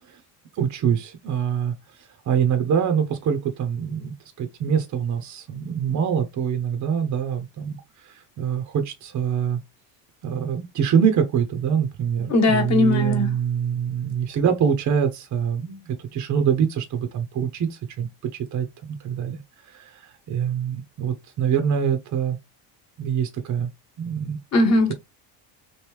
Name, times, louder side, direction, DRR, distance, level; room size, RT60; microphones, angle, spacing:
voice 1, 0.5-9.6 10.2-19.4 19.7-22.4 23.0-23.7 24.0-24.4, right 7 dB, 40° right, 0.6 m, -25 dB
voice 2, 12.3-13.3 24.5-24.9, left 2 dB, 35° left, 1.2 m, -19 dB
3.1 x 2.6 x 3.3 m
cardioid pair, 115°, 46 cm